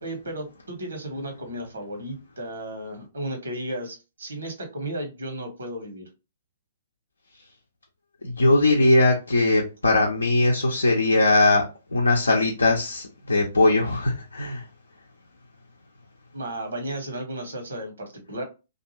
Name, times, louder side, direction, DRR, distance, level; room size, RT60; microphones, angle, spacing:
voice 1, 0.0-6.1 16.3-18.4, right 1 dB, 70° right, 1.1 m, -34 dB
voice 2, 8.2-11.6 11.9-14.6, left 2 dB, 80° left, 0.6 m, -20 dB
2.4 x 2.4 x 2.9 m
figure-of-eight pair, 120°, 0 cm